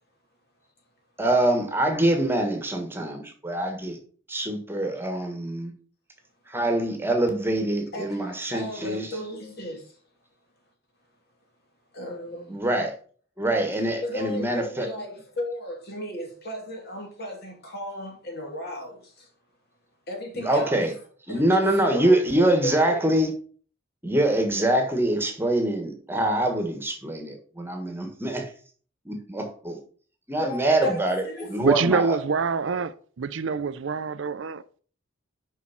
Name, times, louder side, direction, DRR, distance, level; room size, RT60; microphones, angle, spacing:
voice 1, 1.2-4.0 4.3-5.7 6.5-9.1 12.5-12.9 13.4-14.9 20.3-20.9 21.3-23.3 24.0-28.5 29.0-29.8 30.3-32.2, right 1 dB, 10° right, 1.5 m, -24 dB
voice 2, 7.9-9.9 11.9-12.6 14.0-19.3 20.1-20.8 21.3-23.0 30.4-31.6, equal, 50° left, 2.6 m, -35 dB
voice 3, 31.6-34.6, right 5 dB, 65° right, 0.5 m, -25 dB
6.3 x 5.5 x 5.7 m
head